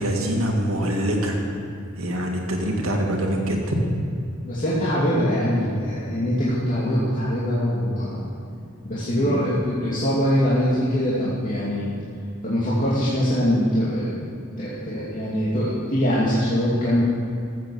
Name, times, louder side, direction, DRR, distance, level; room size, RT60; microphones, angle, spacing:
voice 1, 0.0-1.4 2.0-3.8 9.2-9.4, right 1 dB, 75° right, 0 dB, 2.3 m, -24 dB
voice 2, 4.4-8.3 8.8-11.9 12.4-14.3 14.6-17.0, equal, 40° left, -9 dB, 2.5 m, -23 dB
13.5 x 8.1 x 7.1 m, 2.6 s
head